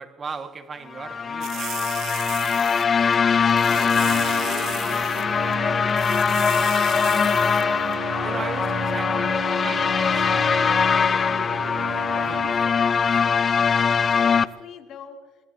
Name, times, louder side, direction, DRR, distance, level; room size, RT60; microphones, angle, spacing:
voice 1, 0.0-2.2 8.2-11.5 12.1-13.4, right 5 dB, 35° right, 1.6 m, -38 dB
sound 1, 0.9-14.5, left 6 dB, 35° left, 0.6 m, -22 dB
sound 2, 1.4-2.9 3.1-3.2 3.5-5.3 5.5-5.6 5.9-7.7 7.9-8.0, right 13 dB, 65° right, 0.4 m, -36 dB
voice 2, 3.3-4.7 5.0-6.4 14.2-15.2, left 7 dB, 60° left, 2.3 m, -43 dB
sound 3, 3.7-12.5, right 10 dB, 80° right, 2.2 m, -36 dB
22.5 x 22.0 x 2.8 m
cardioid pair, 105°, 0 cm